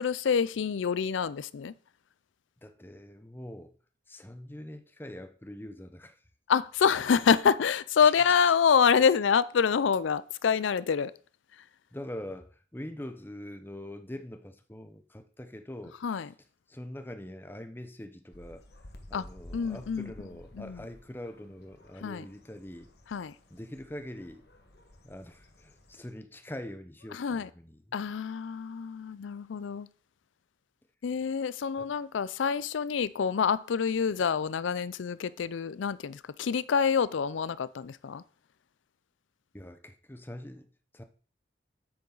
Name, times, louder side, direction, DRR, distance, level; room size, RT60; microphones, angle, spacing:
voice 1, 0.0-1.7 6.5-11.1 16.0-16.3 19.1-19.2 19.5-20.1 20.6-20.8 22.0-22.3 23.1-23.3 27.1-27.5 27.9-29.9 31.0-38.2, left 6 dB, 90° left, 0.4 m, -26 dB
voice 2, 2.6-3.8 4.1-6.2 11.9-16.3 16.7-18.7 19.1-22.9 23.5-24.4 25.0-28.0 31.8-31.9 39.5-41.0, left 1 dB, 10° left, 0.7 m, -43 dB
sound 1, 18.3-26.1, left 1 dB, 60° left, 1.4 m, -53 dB
8.7 x 8.5 x 3.9 m
head